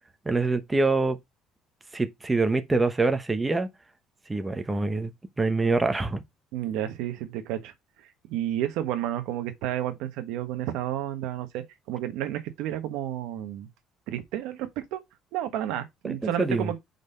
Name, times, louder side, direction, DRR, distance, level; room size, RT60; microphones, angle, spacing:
voice 1, 0.2-1.2 1.9-3.7 4.3-5.1 5.4-6.2 16.0-16.7, right 3 dB, 15° right, 0.8 m, -25 dB
voice 2, 6.5-7.7 8.3-13.7 14.1-15.0 15.3-16.8, right 12 dB, 85° right, 1.1 m, -31 dB
5.1 x 4.0 x 5.4 m
cardioid pair, 140°, 0 cm